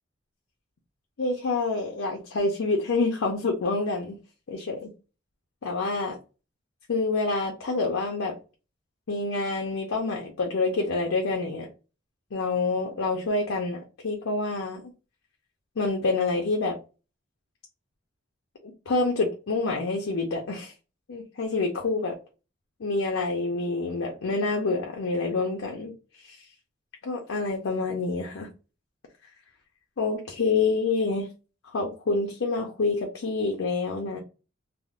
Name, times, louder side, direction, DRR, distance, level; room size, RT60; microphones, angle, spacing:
voice 1, 1.2-4.2 4.5-4.9 5.6-6.2 6.9-8.3 9.1-11.7 12.3-14.8 15.8-16.8 18.6-20.7 21.1-22.2 22.8-26.4 27.0-28.5 30.0-31.3 31.7-34.2, left 3 dB, 80° left, 0.5 m, -27 dB
3.5 x 2.0 x 2.3 m
head